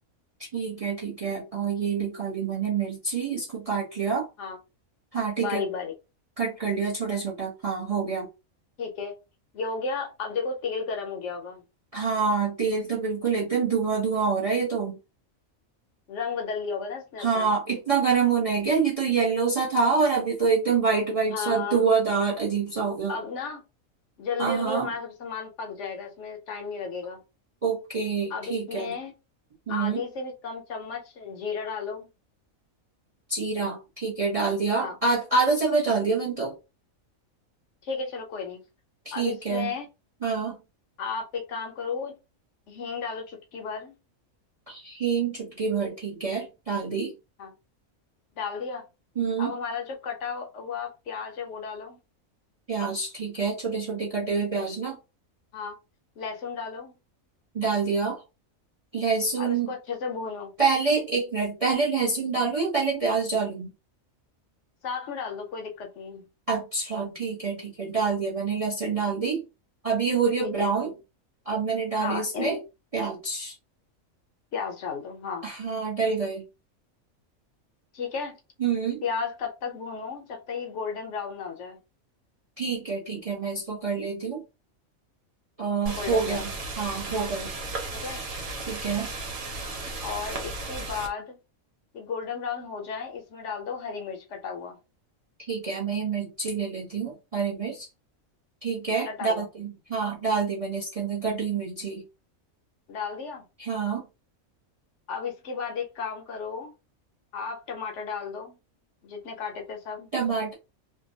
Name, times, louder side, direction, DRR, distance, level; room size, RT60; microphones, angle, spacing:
voice 1, 0.5-4.3 5.1-5.6 6.4-8.3 11.9-15.0 17.2-23.2 24.4-24.9 27.6-28.9 29.7-30.0 33.3-36.5 39.0-39.7 40.2-40.6 44.7-47.1 49.2-49.5 52.7-55.0 57.5-58.2 58.9-59.7 60.6-63.7 66.5-69.4 69.8-70.9 71.5-72.6 72.9-73.5 75.4-76.4 78.6-79.0 82.6-84.4 85.6-86.5 86.8-87.5 88.7-89.1 95.5-97.9 98.6-102.0 103.6-104.0 110.1-110.5, right 5 dB, 40° right, 0.6 m, -26 dB
voice 2, 5.4-5.9 8.8-9.1 9.5-11.6 16.1-17.5 21.3-21.9 23.1-23.6 24.2-27.2 28.3-29.1 29.7-32.1 34.8-35.0 37.8-38.6 39.1-39.9 41.0-42.1 42.7-43.9 47.4-47.5 48.4-48.8 49.4-52.0 55.5-55.8 56.2-56.9 59.4-60.5 64.8-66.3 70.4-70.7 72.0-72.6 74.5-75.5 77.9-78.3 79.0-81.8 86.0-86.4 87.9-88.2 90.0-91.4 91.9-94.8 99.1-99.4 102.9-103.4 105.1-106.7 107.3-108.6 109.0-110.1, left 5 dB, 65° left, 0.8 m, -33 dB
sound 1, 85.9-91.1, right 2 dB, 85° right, 1.2 m, -35 dB
2.6 x 2.1 x 2.6 m
omnidirectional pair, 1.4 m